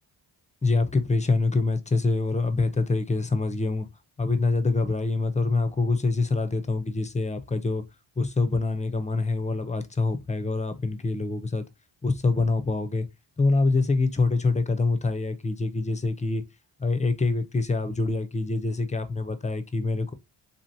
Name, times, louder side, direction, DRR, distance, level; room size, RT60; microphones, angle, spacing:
voice 1, 0.6-3.9 4.2-7.8 8.2-11.6 12.0-13.1 13.4-16.4 16.8-20.1, left 3 dB, 15° left, 0.5 m, -25 dB
3.4 x 2.5 x 2.7 m
supercardioid pair, 45°, 50 cm